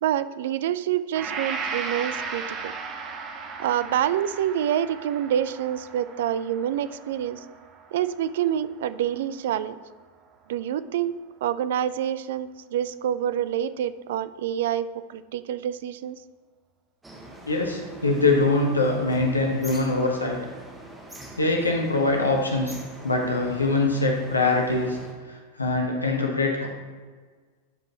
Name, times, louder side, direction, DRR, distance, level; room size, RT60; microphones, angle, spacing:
voice 1, 0.0-2.7 3.6-7.4 7.9-9.8 10.5-11.1 11.4-16.2, right 10 dB, 55° right, 15 dB, 0.4 m, -27 dB
Gong, 1.1-9.2, right 5 dB, 35° right, 0.8 m, -36 dB
sound 1, 17.0-25.1, right 1 dB, 10° right, 1.3 m, -43 dB
voice 2, 17.5-20.4 21.4-22.7 23.0-25.0 25.3-26.7, left 2 dB, 80° left, 1 dB, 1.2 m, -23 dB
11.5 x 5.2 x 3.0 m, 1.5 s
figure-of-eight pair, 90°, 0 cm